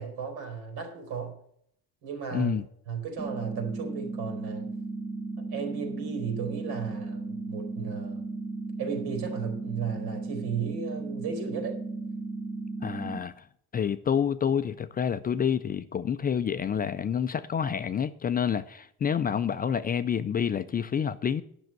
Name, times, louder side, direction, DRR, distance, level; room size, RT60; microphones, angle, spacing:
voice 1, 0.0-1.4 2.0-2.5 2.9-4.7 5.5-8.2 8.8-11.8, right 6 dB, 85° right, 3.9 m, -35 dB
voice 2, 2.3-2.6 12.8-13.4 13.7-21.4, left 8 dB, 25° left, 0.4 m, -28 dB
sound 1, 3.2-13.2, right 3 dB, ahead, 0.8 m, -35 dB
10.5 x 6.2 x 7.6 m
cardioid pair, 165°, 37 cm